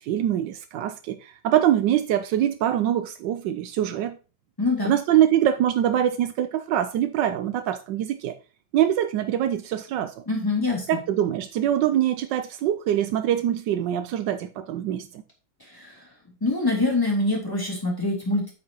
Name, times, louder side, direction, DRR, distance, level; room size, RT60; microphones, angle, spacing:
voice 1, 0.0-4.2 4.8-8.3 8.7-10.2 10.9-15.2, right 11 dB, 80° right, 1.3 m, -24 dB
voice 2, 4.6-4.9 10.3-10.9 15.7-15.9 16.4-18.5, left 2 dB, 10° left, 3.0 m, -24 dB
8.5 x 8.4 x 2.9 m
omnidirectional pair, 1.9 m